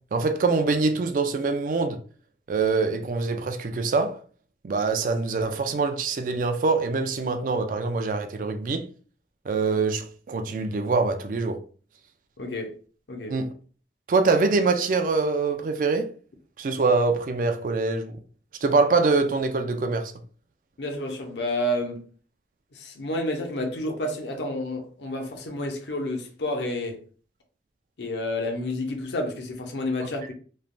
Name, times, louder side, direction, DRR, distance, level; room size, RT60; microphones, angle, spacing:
voice 1, 0.1-2.0 2.5-4.2 4.6-8.9 9.5-11.6 13.3-13.5 14.1-16.1 16.6-18.2 18.6-20.1, right 4 dB, 45° right, 0.3 m, -24 dB
voice 2, 12.4-12.7 13.1-13.4 20.8-22.1 22.7-27.0 28.0-30.3, left 1 dB, 70° left, 0.6 m, -30 dB
3.1 x 2.1 x 2.5 m
head